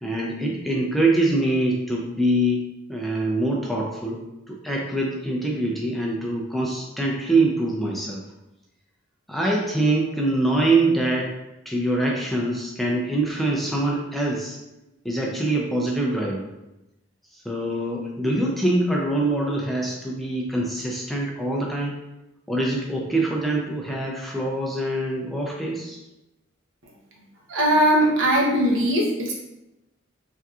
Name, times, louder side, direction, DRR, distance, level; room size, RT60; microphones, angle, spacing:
voice 1, 0.0-2.6 2.9-4.2 4.5-8.2 9.3-11.3 11.7-14.6 15.0-16.5 17.5-22.0 22.5-26.0, right 2 dB, ahead, -3 dB, 0.4 m, -24 dB
voice 2, 27.5-29.3, equal, 75° right, -3 dB, 0.8 m, -20 dB
3.5 x 2.7 x 2.3 m, 0.95 s
head